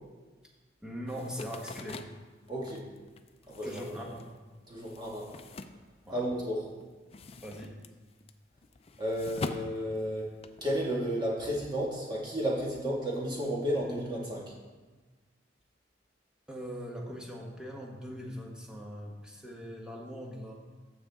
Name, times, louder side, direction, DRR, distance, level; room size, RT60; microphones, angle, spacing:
voice 1, 0.8-2.0 3.6-4.2 6.0-6.2 7.4-7.7 16.5-20.5, equal, 5° right, -1 dB, 1.2 m, -41 dB
sound 1, 1.1-6.5 6.8-10.7, left 3 dB, 35° left, 0.4 m, -44 dB
voice 2, 2.5-2.9 3.5-3.8 4.7-5.3 6.1-6.6 9.0-10.3 10.6-14.5, equal, 25° right, -4 dB, 2.0 m, -32 dB
14.5 x 5.3 x 3.7 m, 1.3 s
head